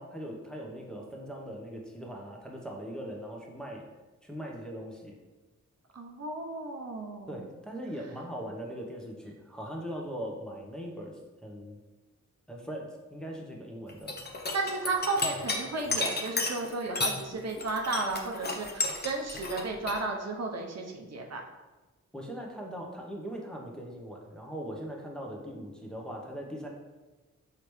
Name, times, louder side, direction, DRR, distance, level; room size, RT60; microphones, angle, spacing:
voice 1, 0.0-3.8 4.2-5.1 7.3-11.8 12.5-14.1 22.1-26.7, equal, ahead, -2 dB, 0.8 m, -40 dB
voice 2, 5.9-7.4 14.5-21.4, right 3 dB, 60° right, 1 dB, 0.7 m, -33 dB
sound 1, 13.9-17.2 17.5-20.0, left 3 dB, 35° left, 0.7 m, -32 dB
4.8 x 3.3 x 3.1 m, 1.2 s
cardioid pair, 60°, 30 cm